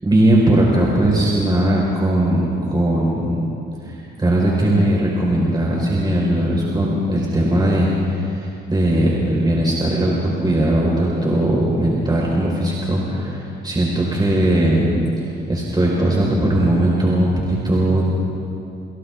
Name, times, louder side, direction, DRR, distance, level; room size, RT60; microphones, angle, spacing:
voice 1, 0.0-3.3 3.8-14.9 15.5-18.0, right 1 dB, 20° right, -4 dB, 5.0 m, -19 dB
29.5 x 29.0 x 3.8 m, 2.8 s
cardioid pair, 90°, 20 cm